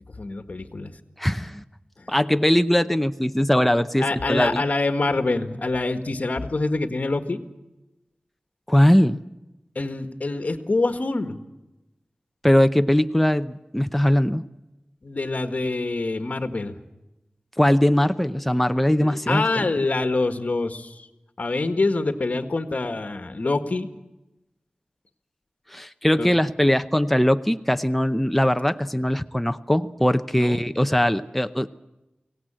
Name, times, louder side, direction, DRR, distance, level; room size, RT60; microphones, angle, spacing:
voice 1, 0.2-1.0 2.0-2.1 4.0-7.4 9.8-11.4 15.0-16.8 19.0-21.1 21.4-23.9 26.2-26.3 30.3-30.6, left 3 dB, 55° left, 8 dB, 1.8 m, -25 dB
voice 2, 1.2-1.6 2.1-4.6 8.7-9.2 12.4-14.4 17.6-19.7 25.7-31.7, left 1 dB, 5° left, 9 dB, 0.7 m, -20 dB
24.0 x 18.0 x 8.9 m, 0.98 s
wide cardioid pair, 75°, 3 cm